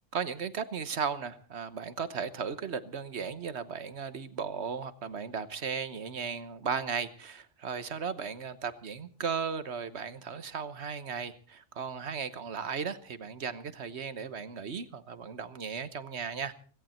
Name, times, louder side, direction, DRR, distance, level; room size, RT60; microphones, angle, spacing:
voice 1, 0.1-16.5, right 6 dB, 65° right, 13 dB, 1.3 m, -36 dB
17.5 x 17.0 x 4.3 m, 0.42 s
omnidirectional pair, 1.2 m